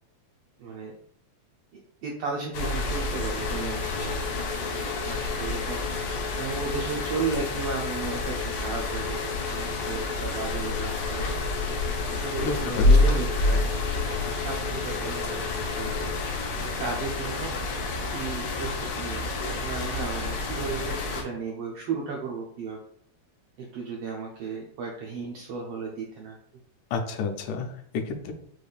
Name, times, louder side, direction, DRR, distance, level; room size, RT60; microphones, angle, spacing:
voice 1, 0.6-0.9 1.7-11.4 12.1-15.4 15.8-15.9 16.6-17.6 18.1-22.8 23.6-26.3, right 5 dB, 80° right, -1 dB, 1.3 m, -35 dB
sound 1, 2.5-21.2, left 2 dB, 70° left, 1.9 m, -28 dB
sound 2, 2.9-16.1, left 9 dB, 55° right, 1.3 m, -39 dB
voice 2, 12.4-12.8 26.9-28.3, left 4 dB, 90° left, 6 dB, 2.1 m, -30 dB
5.8 x 3.3 x 2.3 m, 0.68 s
omnidirectional pair, 3.4 m